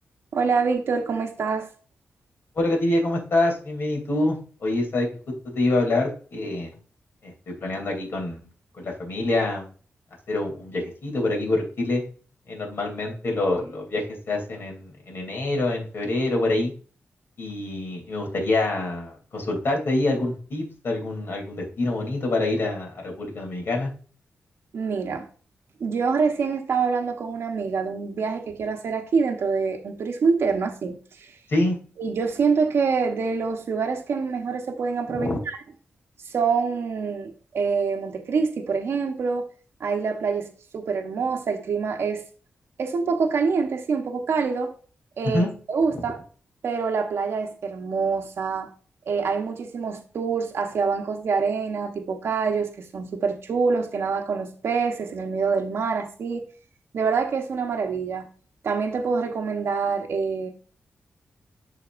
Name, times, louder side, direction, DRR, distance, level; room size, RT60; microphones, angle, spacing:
voice 1, 0.3-1.7 24.7-25.3 25.8-31.3 32.0-35.6 36.3-39.5 39.8-40.5 40.7-42.2 42.8-44.7 45.2-46.2 46.6-48.7 49.1-56.4 56.9-58.3 58.6-60.5, right 5 dB, 70° right, 1.0 m, -25 dB
voice 2, 2.5-5.1 5.4-6.7 7.2-8.4 8.8-9.7 10.3-12.0 12.5-16.7 17.4-23.9 31.5-31.8 35.1-35.4 45.2-45.5, left 2 dB, 60° left, 2.9 m, -26 dB
11.5 x 4.2 x 2.5 m
wide cardioid pair, 135°, 4 cm